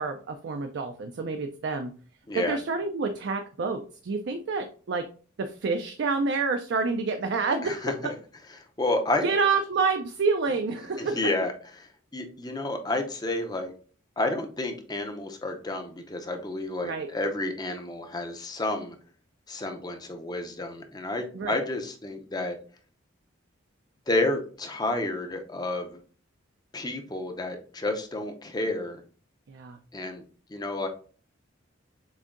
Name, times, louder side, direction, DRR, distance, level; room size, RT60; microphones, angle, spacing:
voice 1, 0.0-1.9 2.3-5.0 5.4-7.9 9.2-11.3 16.8-17.1 21.3-21.6 29.5-29.8, right 4 dB, 60° right, 6 dB, 0.4 m, -28 dB
voice 2, 2.3-2.6 7.6-8.1 8.8-9.2 11.0-11.5 11.8-11.9 12.1-13.7 14.2-19.0 19.5-22.6 24.1-26.0 26.7-29.0 29.9-30.2 30.5-30.9, left 2 dB, 20° left, 5 dB, 0.5 m, -30 dB
7.0 x 2.7 x 2.5 m, 0.41 s
head